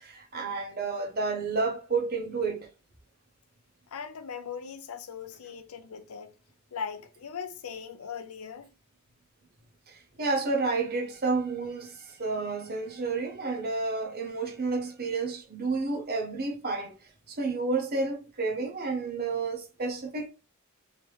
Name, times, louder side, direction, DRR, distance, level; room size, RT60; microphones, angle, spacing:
voice 1, 0.0-2.7 9.9-20.3, right 3 dB, 45° right, 0.9 m, -31 dB
voice 2, 3.9-6.3 6.7-8.7, left 6 dB, 85° left, 0.6 m, -39 dB
3.2 x 2.9 x 3.1 m
head